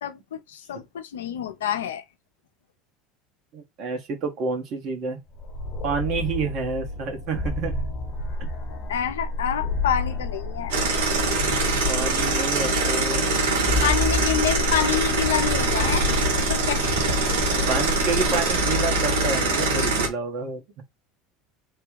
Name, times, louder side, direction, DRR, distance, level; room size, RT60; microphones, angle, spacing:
voice 1, 0.0-2.0 8.9-10.7 13.8-16.1 16.4-17.0, left 10 dB, 85° left, 0.5 m, -27 dB
voice 2, 3.5-5.2 5.8-7.7 11.9-13.2 17.7-20.6, right 4 dB, 55° right, 1.2 m, -29 dB
sound 1, 5.3-19.9, left 2 dB, 50° left, 0.9 m, -30 dB
sound 2, 10.7-20.1, right 3 dB, 80° right, 1.1 m, -23 dB
3.2 x 2.3 x 3.1 m
hypercardioid pair, 80°, 0 cm